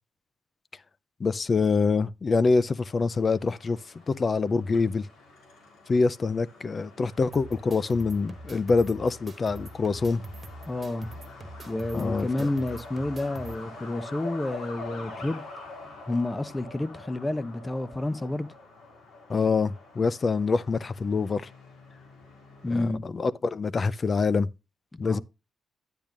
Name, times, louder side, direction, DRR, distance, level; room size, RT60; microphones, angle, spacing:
voice 1, 1.2-3.8 4.1-5.1 5.9-10.2 11.9-12.5 19.3-21.5 22.7-24.5 25.0-25.2, left 4 dB, 35° left, 0.5 m, -25 dB
Truck, 2.8-22.8, left 3 dB, 85° left, 3.7 m, -46 dB
sound 1, 7.3-13.5, right 1 dB, 35° right, 1.6 m, -43 dB
voice 2, 10.7-11.1 11.7-15.4 16.1-18.5 22.6-23.0 25.0-25.2, left 2 dB, 15° left, 0.9 m, -30 dB
10.0 x 8.9 x 2.5 m
cardioid pair, 100°, 0 cm